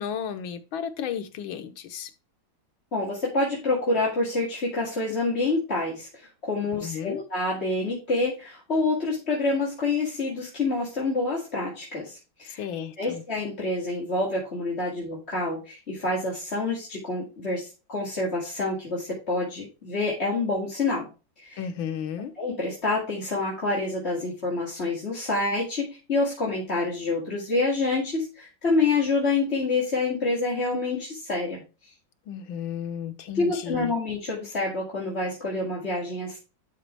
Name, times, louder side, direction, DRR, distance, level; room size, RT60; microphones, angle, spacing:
voice 1, 0.0-2.1 6.8-7.2 12.5-13.2 21.6-22.4 32.3-33.9, left 8 dB, 85° left, 1.7 m, -33 dB
voice 2, 2.9-12.6 13.0-21.1 21.4-21.6 22.4-31.9 33.3-36.4, left 3 dB, 30° left, 2.6 m, -27 dB
11.5 x 5.1 x 3.4 m
omnidirectional pair, 2.1 m